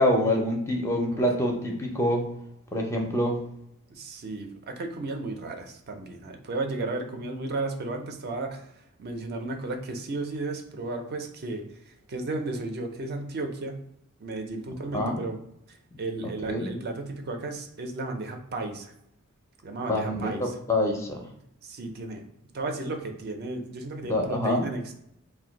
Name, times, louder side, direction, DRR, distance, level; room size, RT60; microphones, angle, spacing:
voice 1, 0.0-2.3 2.7-3.4 14.9-15.3 16.5-16.7 19.9-20.3 20.7-21.2 24.1-24.6, left 1 dB, 15° left, 1 dB, 0.4 m, -25 dB
voice 2, 3.9-8.7 9.0-13.8 14.2-15.4 15.7-18.9 19.6-20.6 21.6-22.2 22.5-24.9, right 2 dB, 45° right, 4 dB, 0.4 m, -34 dB
2.5 x 2.1 x 3.8 m, 0.77 s
head